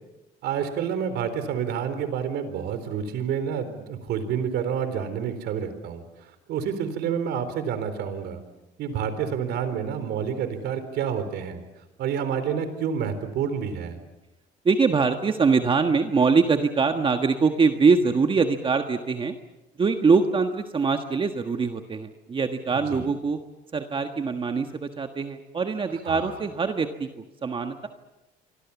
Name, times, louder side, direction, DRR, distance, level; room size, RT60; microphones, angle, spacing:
voice 1, 0.4-6.0 6.5-8.4 8.8-11.6 12.0-14.0 22.7-23.0 26.1-26.3, right 7 dB, 80° right, 11 dB, 4.0 m, -28 dB
voice 2, 14.6-19.4 19.8-23.4 23.7-27.1 27.4-27.9, right 4 dB, 30° right, 6 dB, 1.5 m, -23 dB
27.0 x 24.5 x 7.2 m, 1.0 s
cardioid pair, 110°, 17 cm